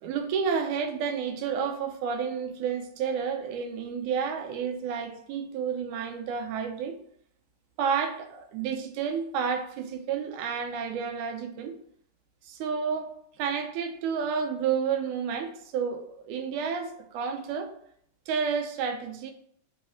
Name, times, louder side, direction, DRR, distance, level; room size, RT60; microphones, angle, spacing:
voice 1, 0.0-7.0 7.8-11.8 12.5-13.1 13.4-17.7 18.3-19.3, right 6 dB, 85° right, 2.1 m, -30 dB
5.5 x 3.1 x 5.6 m
omnidirectional pair, 3.6 m